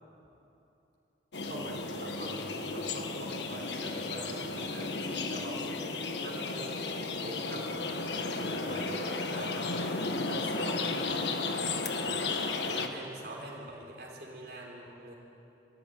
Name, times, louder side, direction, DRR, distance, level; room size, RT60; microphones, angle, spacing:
sound 1, 1.3-12.9, left 3 dB, 80° left, 1.4 m, -34 dB
voice 1, 1.4-8.0 8.4-11.3 12.1-15.1, right 1 dB, 55° right, -3 dB, 3.9 m, -44 dB
21.5 x 16.0 x 9.3 m, 2.9 s
head